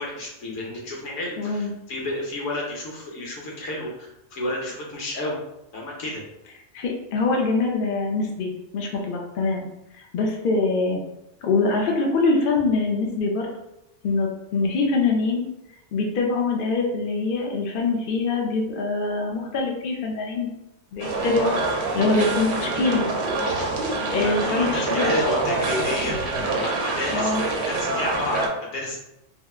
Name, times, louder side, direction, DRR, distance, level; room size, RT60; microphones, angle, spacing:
voice 1, 0.0-5.4 5.7-6.2 24.1-29.0, left 1 dB, 80° left, -2 dB, 1.2 m, -31 dB
voice 2, 1.4-1.7 6.7-9.7 10.1-11.0 11.4-13.5 14.0-15.4 15.9-20.5 20.9-23.1 24.1-25.2 27.1-27.4, left 3 dB, 55° left, 0 dB, 0.7 m, -24 dB
sound 1, 21.0-28.5, right 2 dB, 65° right, 0.9 m, -26 dB
3.3 x 2.8 x 2.3 m, 0.88 s
omnidirectional pair, 1.3 m